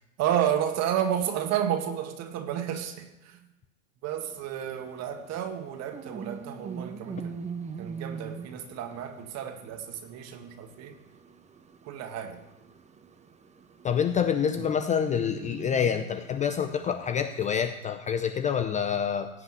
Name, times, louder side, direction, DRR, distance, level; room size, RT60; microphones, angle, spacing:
voice 1, 0.2-3.4 4.0-7.4 7.8-11.0 11.9-12.4, right 10 dB, 40° right, 7 dB, 1.9 m, -31 dB
sound 1, 4.2-17.8, right 6 dB, 15° right, 1.0 m, -43 dB
voice 2, 13.8-19.3, left 8 dB, 15° left, 9 dB, 0.5 m, -27 dB
16.0 x 5.6 x 9.4 m, 1.0 s
hypercardioid pair, 115°, 42 cm